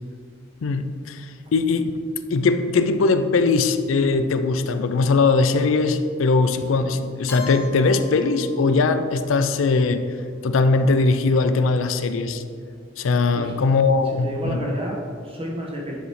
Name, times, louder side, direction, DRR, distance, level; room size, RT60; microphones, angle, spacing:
voice 1, 0.6-2.0 2.3-10.1 10.4-12.4 13.0-14.7, left 3 dB, 80° left, 9 dB, 0.4 m, -20 dB
Keyboard (musical), 7.3-9.2, left 2 dB, 10° left, 0.8 m, -41 dB
voice 2, 14.2-16.0, equal, 30° right, -2 dB, 1.4 m, -30 dB
10.0 x 5.0 x 3.2 m, 2.2 s
head